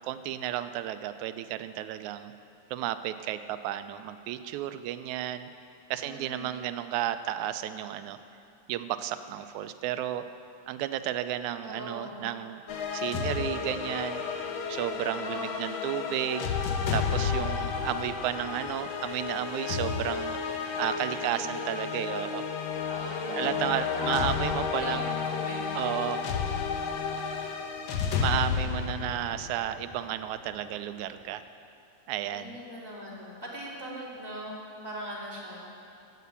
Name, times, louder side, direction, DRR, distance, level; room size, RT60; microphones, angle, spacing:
voice 1, 0.0-2.3 2.7-5.5 5.9-8.2 8.7-10.2 10.7-12.6 12.9-14.2 14.7-16.5 16.9-22.5 23.3-25.2 25.7-26.2 28.2-31.4 32.1-32.6, right 12 dB, 85° right, 11 dB, 2.0 m, -33 dB
voice 2, 6.0-6.7 11.6-12.3 15.2-16.0 21.1-21.6 22.8-23.5 23.9-25.7 32.2-34.6 34.8-35.7, equal, 10° right, -6 dB, 2.3 m, -40 dB
sound 1, 12.7-30.3, left 6 dB, 90° left, 1.1 m, -32 dB
12.5 x 8.3 x 8.3 m, 2.5 s
omnidirectional pair, 3.4 m